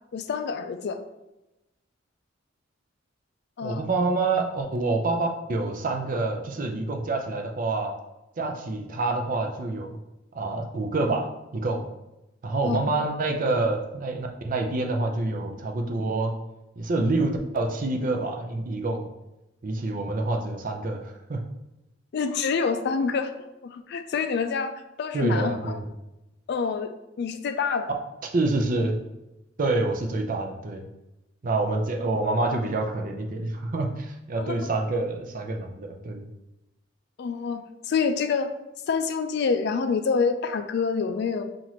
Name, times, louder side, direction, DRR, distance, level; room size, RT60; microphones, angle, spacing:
voice 1, 0.1-1.0 3.6-3.8 12.6-12.9 22.1-23.3 23.6-25.8 26.5-26.9 27.2-27.9 34.4-34.6 37.2-38.5 38.9-41.4, left 5 dB, 60° left, 8 dB, 0.4 m, -27 dB
voice 2, 3.6-7.9 8.4-10.0 10.3-11.3 11.5-11.8 12.4-16.3 16.8-19.1 19.6-21.4 25.1-25.9 28.2-28.9 29.6-30.9 31.4-36.3, right 2 dB, 45° right, 3 dB, 0.6 m, -27 dB
5.7 x 2.5 x 3.0 m, 0.94 s
head